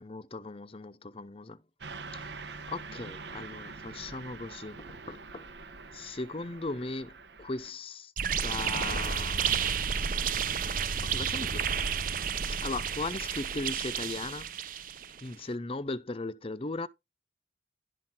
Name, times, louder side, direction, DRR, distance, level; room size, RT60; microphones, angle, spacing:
voice 1, 0.0-1.6 2.1-2.4 2.7-5.5 5.9-8.1 8.4-9.6 11.0-11.7 12.5-14.5 15.2-16.9, left 3 dB, 30° left, 0.7 m, -38 dB
Car passing by / Truck, 1.8-7.7, right 4 dB, 75° right, 1.1 m, -45 dB
sound 1, 8.2-15.2, right 7 dB, 50° right, 0.8 m, -31 dB
11.5 x 4.4 x 5.8 m
head